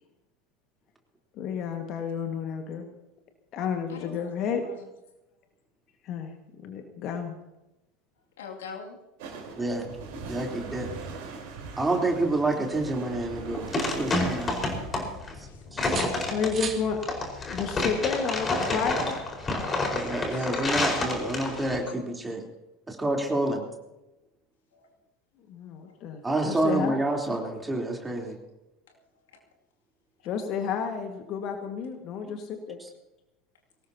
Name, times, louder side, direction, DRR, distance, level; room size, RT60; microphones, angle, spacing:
voice 1, 1.4-2.9 3.5-4.6 6.0-7.3 16.3-17.0 17.4-19.2 25.5-27.0 30.2-32.8, left 6 dB, 45° left, 5 dB, 1.8 m, -31 dB
voice 2, 3.9-4.3 4.6-4.8 8.4-9.0 15.7-16.4 20.3-20.5 21.9-22.0, left 5 dB, 70° left, 0 dB, 2.5 m, -43 dB
sound 1, 9.2-15.1, right 4 dB, 60° right, 4.1 m, -41 dB
voice 3, 9.6-9.9 10.3-10.9 11.8-14.6 15.7-15.8 19.9-22.4 22.9-23.7 26.2-28.4 32.2-32.3 32.8-32.9, right 2 dB, 15° right, 1 dB, 3.5 m, -28 dB
sound 2, 13.2-21.8, left 2 dB, 25° left, 4.8 m, -29 dB
sound 3, 13.2-14.2 14.6-15.4 15.8-16.9 18.8-19.0, right 6 dB, 30° right, 2.6 m, -40 dB
23.0 x 18.5 x 2.9 m, 0.98 s
figure-of-eight pair, 75°, 0 cm